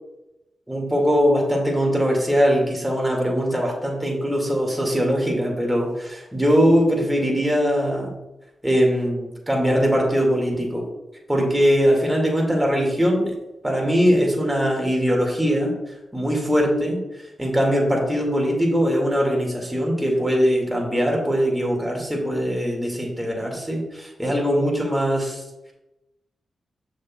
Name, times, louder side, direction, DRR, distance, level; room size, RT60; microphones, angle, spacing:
voice 1, 0.7-8.2 8.6-10.8 11.3-13.3 13.6-15.7 16.1-17.0 17.4-25.4, equal, 10° right, -1 dB, 2.4 m, -21 dB
6.8 x 6.5 x 2.5 m, 0.97 s
cardioid pair, 50°, 0 cm